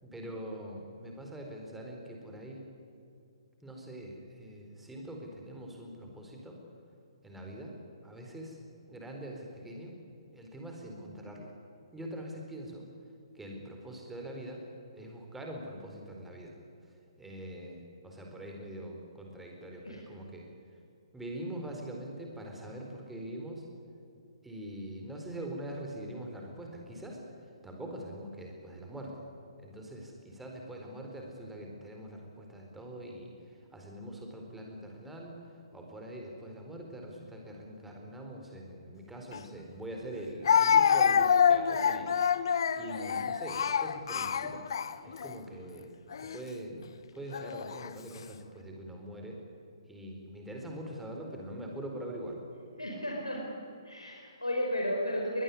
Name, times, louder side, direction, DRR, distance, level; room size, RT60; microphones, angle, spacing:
voice 1, 0.0-2.6 3.6-6.6 7.2-7.7 8.0-8.6 8.9-10.0 10.3-11.5 11.9-12.9 13.3-14.6 14.9-16.5 17.2-20.5 21.1-23.6 24.4-29.2 29.6-44.6 45.0-45.9 46.2-49.4 49.9-52.4, right 1 dB, 5° right, 0 dB, 4.4 m, -43 dB
Speech, 39.3-39.4 40.4-45.3 46.1-46.4 47.3-47.9, left 7 dB, 55° left, 1.1 m, -26 dB
voice 2, 52.8-53.5 53.8-55.4, equal, 90° left, -1 dB, 4.7 m, -33 dB
22.0 x 20.0 x 9.7 m, 2.7 s
figure-of-eight pair, 135°, 3 cm